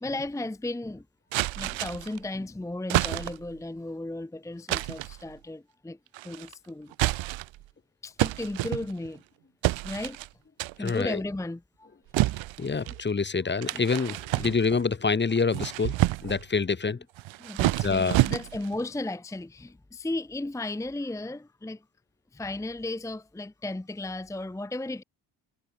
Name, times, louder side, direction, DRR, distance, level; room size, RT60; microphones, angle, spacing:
voice 1, 0.0-1.1 1.5-6.0 6.2-6.9 8.0-9.2 9.8-10.2 10.8-11.9 13.7-13.8 14.3-14.6 17.4-21.8 22.3-25.0, left 2 dB, 5° left, 0.8 m, -35 dB
sound 1, 1.3-2.2 2.9-3.5 4.7-5.2 6.1-6.5 6.9-7.6 8.2-9.2 9.6-10.3 10.6-11.0 12.1-13.0 13.6-14.9 15.4-16.4 17.2-18.8, right 17 dB, 75° right, 0.9 m, -28 dB
voice 2, 10.8-11.2 12.6-17.0 17.8-18.2, left 4 dB, 25° left, 1.0 m, -26 dB
supercardioid pair, 65°, 46 cm